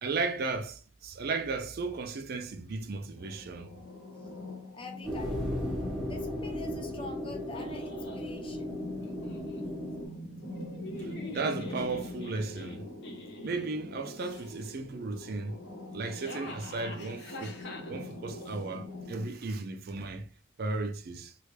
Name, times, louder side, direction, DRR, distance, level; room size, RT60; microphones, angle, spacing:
voice 1, 0.0-3.7 11.0-12.9 13.4-15.6 15.9-17.6 17.8-20.3 20.6-21.3, right 3 dB, 50° right, 0.4 m, -35 dB
sound 1, 3.2-19.2, left 1 dB, 85° left, 1.1 m, -44 dB
voice 2, 4.7-5.5 6.1-8.9, left 3 dB, 25° left, 0.5 m, -46 dB
sound 2, 5.0-10.1, left 1 dB, ahead, 0.9 m, -36 dB
sound 3, 7.5-8.3 9.0-9.6 10.5-13.7 14.1-14.7 15.9-18.6, left 2 dB, 60° left, 0.8 m, -45 dB
3.1 x 2.5 x 3.2 m
head